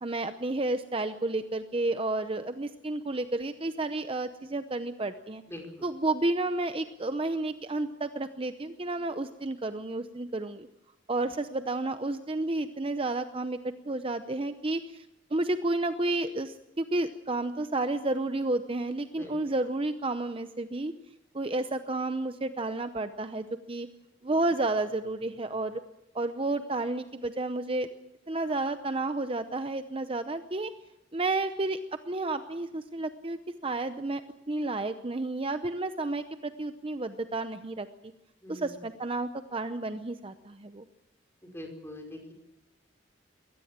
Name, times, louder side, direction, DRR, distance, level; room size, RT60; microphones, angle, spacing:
voice 1, 0.0-5.4 5.8-10.7 11.1-15.1 15.3-20.9 21.3-23.9 24.2-25.8 26.1-27.9 28.3-30.7 31.1-31.8 32.1-34.2 34.5-37.9 38.5-40.8, right 2 dB, 30° right, 10 dB, 0.7 m, -31 dB
voice 2, 5.5-5.9 19.1-19.3 38.4-38.7 41.4-42.3, left 1 dB, 15° left, 2 dB, 5.0 m, -43 dB
22.5 x 18.0 x 7.4 m, 0.92 s
head